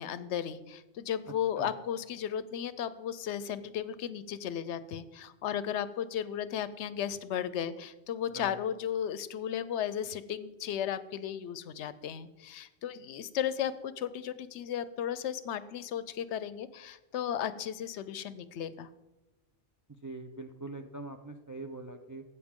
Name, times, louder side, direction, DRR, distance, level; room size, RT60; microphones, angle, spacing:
voice 1, 0.0-18.9, left 9 dB, 85° left, 15 dB, 0.9 m, -35 dB
voice 2, 20.0-22.2, right 2 dB, 25° right, 5 dB, 0.5 m, -42 dB
14.0 x 8.3 x 3.6 m, 1.0 s
omnidirectional pair, 1.2 m